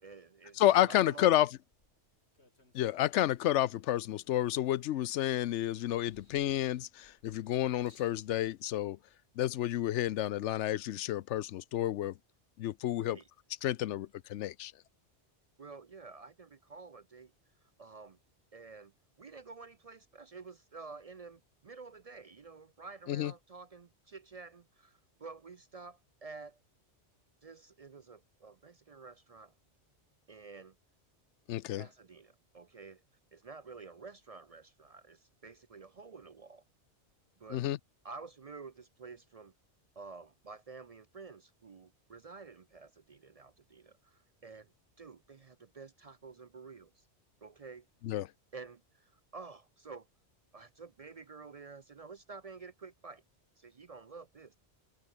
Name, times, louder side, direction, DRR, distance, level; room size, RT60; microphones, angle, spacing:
voice 1, 0.0-1.4 13.0-13.3 15.6-17.3 17.6-18.2 18.5-18.9 19.2-26.6 27.4-29.5 30.3-30.8 31.7-33.0 33.3-36.6 37.4-37.6 38.0-39.5 40.0-47.0 47.4-47.9 48.5-50.1 50.5-53.2 53.6-54.5, right 4 dB, 45° right, 0.5 m, -50 dB
voice 2, 0.6-1.5 2.7-9.0 9.4-12.1 12.6-13.2 13.6-14.7 23.1-23.3 31.5-31.8 37.5-37.8 48.0-48.3, left 13 dB, 90° left, 0.9 m, -30 dB
sound 1, 1.7-3.5 4.1-5.2 5.6-8.2 9.1-9.2, left 2 dB, 70° left, 5.4 m, -67 dB
omnidirectional pair, 1.2 m